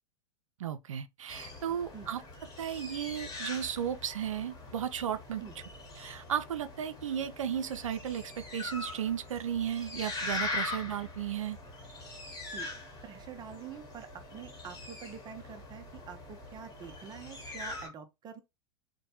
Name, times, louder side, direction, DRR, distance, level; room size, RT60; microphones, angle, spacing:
voice 1, 0.6-2.2 2.6-5.4 6.0-11.6, right 9 dB, 85° right, 0.4 m, -34 dB
sound 1, 1.3-17.9, left 2 dB, 25° left, 1.0 m, -42 dB
voice 2, 13.0-18.4, right 7 dB, 25° right, 0.6 m, -46 dB
2.9 x 2.1 x 2.8 m
hypercardioid pair, 100°, 16 cm